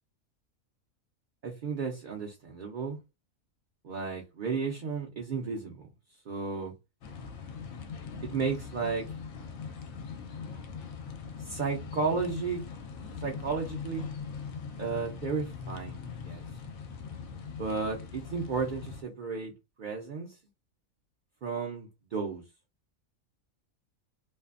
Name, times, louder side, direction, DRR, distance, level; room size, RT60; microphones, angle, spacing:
voice 1, 1.4-3.0 3.8-5.8 6.3-6.7 8.2-9.1 11.4-12.6 13.2-14.1 14.8-16.4 17.6-19.5 19.8-20.4 21.4-22.4, right 5 dB, 55° right, 0.5 m, -33 dB
sound 1, 7.0-19.0, left 5 dB, 85° left, 1.0 m, -41 dB
2.6 x 2.4 x 2.4 m
omnidirectional pair, 1.5 m